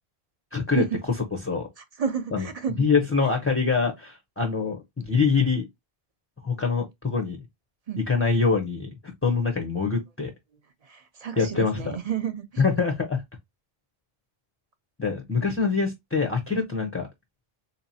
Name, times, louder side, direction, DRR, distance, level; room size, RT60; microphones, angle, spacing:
voice 1, 0.5-0.8 1.4-1.7 2.3-2.5 2.8-5.7 6.4-7.4 8.1-8.9 9.2-10.3 11.4-11.8 12.6-13.2 15.0-17.1, left 5 dB, 15° left, 0.5 m, -24 dB
voice 2, 1.8-2.9 7.9-8.0 10.8-12.6, right 7 dB, 45° right, 0.6 m, -31 dB
3.9 x 2.9 x 2.6 m
omnidirectional pair, 1.0 m